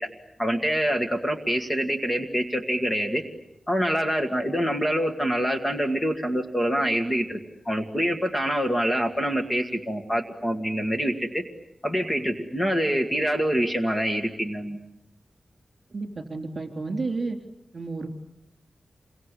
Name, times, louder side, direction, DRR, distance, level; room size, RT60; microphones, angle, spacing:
voice 1, 0.4-3.2 3.7-7.4 7.7-11.4 11.8-14.8, equal, 15° left, 4 dB, 1.8 m, -25 dB
voice 2, 15.9-17.4 17.7-18.1, right 3 dB, 40° right, 4 dB, 3.6 m, -31 dB
28.0 x 23.5 x 8.3 m, 0.87 s
wide cardioid pair, 170°, 0 cm